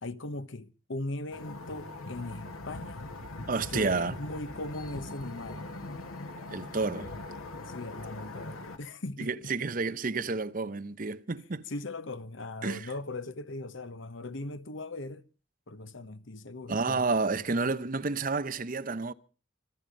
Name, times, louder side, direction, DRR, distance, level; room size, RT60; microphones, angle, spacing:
voice 1, 0.0-3.0 3.7-5.7 7.6-9.5 11.7-15.2 15.7-17.0, left 2 dB, 60° left, 1.0 m, -39 dB
sound 1, 1.3-8.8, left 2 dB, 90° left, 2.0 m, -41 dB
voice 2, 3.5-4.2 6.5-7.1 9.2-11.6 12.6-12.9 16.7-19.1, right 4 dB, 40° right, 0.7 m, -30 dB
25.0 x 9.1 x 5.3 m
head